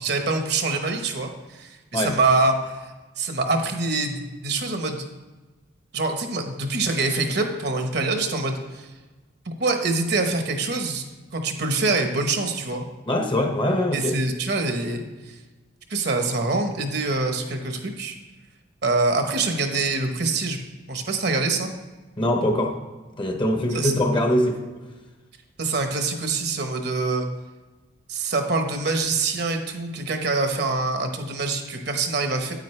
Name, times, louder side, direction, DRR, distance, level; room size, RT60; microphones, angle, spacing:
voice 1, 0.0-2.9 3.2-5.1 5.9-8.9 9.4-11.0 11.3-12.8 13.9-15.3 15.9-18.2 18.8-20.6 20.9-21.7 23.7-23.9 25.6-27.3 28.1-32.5, right 3 dB, 55° right, 5 dB, 1.0 m, -25 dB
voice 2, 13.1-14.2 22.2-22.8 23.2-24.7, left 1 dB, 25° left, 3 dB, 0.9 m, -22 dB
9.2 x 8.9 x 3.2 m, 1.2 s
head